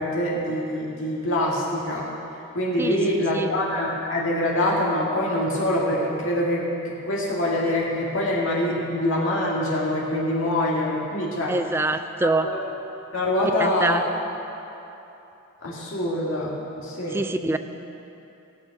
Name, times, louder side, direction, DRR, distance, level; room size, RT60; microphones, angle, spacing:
voice 1, 0.0-2.0 2.5-11.5 12.2-12.6 13.1-14.0 15.6-16.5 16.8-17.2 17.5-17.6, left 1 dB, 60° left, -4 dB, 1.9 m, -25 dB
voice 2, 2.8-3.5 11.5-12.5 13.6-14.0 17.1-17.6, right 2 dB, 10° right, 9 dB, 0.3 m, -25 dB
18.0 x 7.1 x 5.9 m, 2.9 s
head